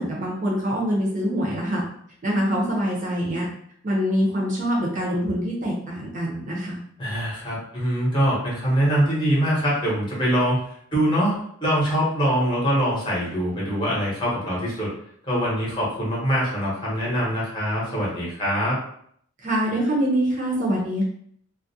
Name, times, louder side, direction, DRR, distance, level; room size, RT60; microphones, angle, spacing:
voice 1, 0.0-1.8 2.2-3.5 3.8-6.8 19.4-21.0, equal, 35° right, -4 dB, 0.6 m, -24 dB
voice 2, 7.0-10.6 10.9-14.9 15.2-18.8, equal, 20° left, -6 dB, 0.8 m, -23 dB
2.3 x 2.1 x 2.6 m, 0.65 s
head